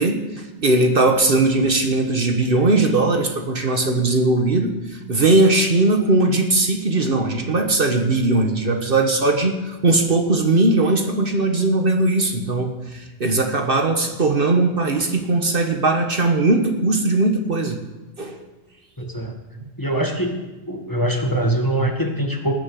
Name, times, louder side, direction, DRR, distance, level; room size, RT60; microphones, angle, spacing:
voice 1, 0.0-17.8 18.2-18.4, right 2 dB, 50° right, 5 dB, 1.4 m, -19 dB
voice 2, 19.0-19.4 19.8-20.4 20.7-22.5, right 1 dB, 20° left, 2 dB, 1.6 m, -23 dB
19.0 x 6.7 x 7.7 m, 1.1 s
omnidirectional pair, 1.2 m